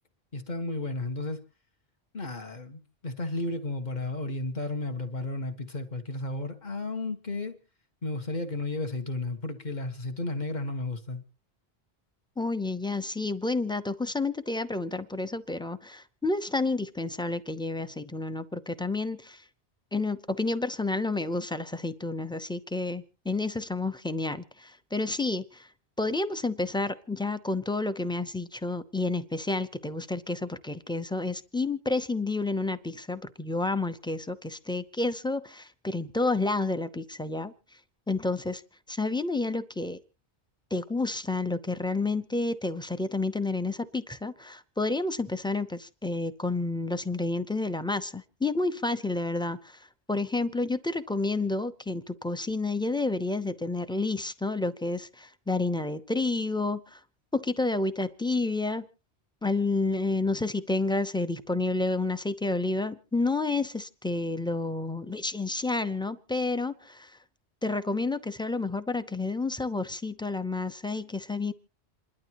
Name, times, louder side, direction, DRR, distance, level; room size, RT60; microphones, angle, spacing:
voice 1, 0.3-1.4 2.1-7.6 8.0-11.2, left 2 dB, 40° left, 1.6 m, -33 dB
voice 2, 12.4-19.4 19.9-25.7 26.0-37.5 38.1-38.6 38.9-40.0 40.7-57.0 57.3-58.9 59.4-67.1 67.6-71.5, left 3 dB, 5° left, 0.5 m, -30 dB
28.0 x 12.0 x 3.0 m
omnidirectional pair, 1.1 m